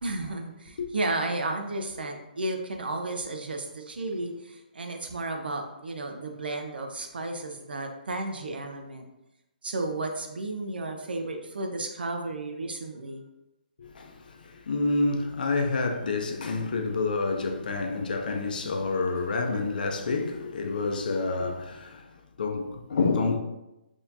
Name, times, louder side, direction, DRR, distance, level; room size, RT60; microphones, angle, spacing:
voice 1, 0.0-9.1 9.6-13.2, right 2 dB, 80° right, 0.7 m, -33 dB
voice 2, 13.8-23.4, left 3 dB, 65° left, 0.6 m, -28 dB
4.2 x 2.9 x 2.7 m
hypercardioid pair, 155°, 5 cm